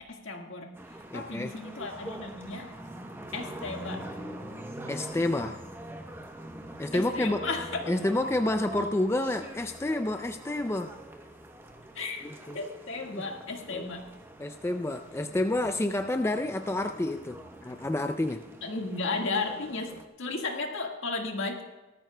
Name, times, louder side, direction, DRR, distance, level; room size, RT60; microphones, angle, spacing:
voice 1, 0.1-0.7 1.1-2.7 3.3-4.1 6.9-7.9 11.9-12.3 12.5-14.1 18.6-21.6, left 3 dB, 65° left, 2 dB, 1.6 m, -34 dB
sound 1, 0.7-20.0, right 1 dB, 10° right, 0.8 m, -44 dB
voice 2, 1.1-1.5 4.9-5.6 6.8-7.5 7.9-10.9 12.2-12.6 13.1-13.2 13.7-13.9 14.4-18.4, left 1 dB, 10° left, 7 dB, 0.3 m, -29 dB
18.5 x 13.5 x 2.2 m, 1.2 s
head